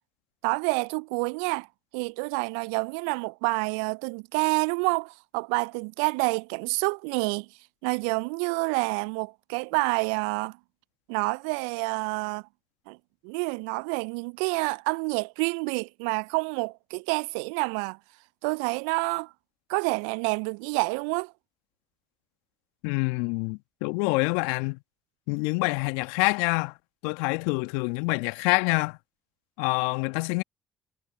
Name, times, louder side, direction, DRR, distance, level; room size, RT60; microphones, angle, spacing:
voice 1, 0.4-1.7 1.9-7.5 7.8-10.6 11.1-12.4 12.9-13.0 13.2-18.0 18.4-19.3 19.7-21.3, right 34 dB, 75° right, 0.6 m, -28 dB
voice 2, 22.8-24.8 25.3-26.7 27.0-29.0 29.6-30.4, left 30 dB, 75° left, 1.4 m, -26 dB
figure-of-eight pair, 45°, 3 cm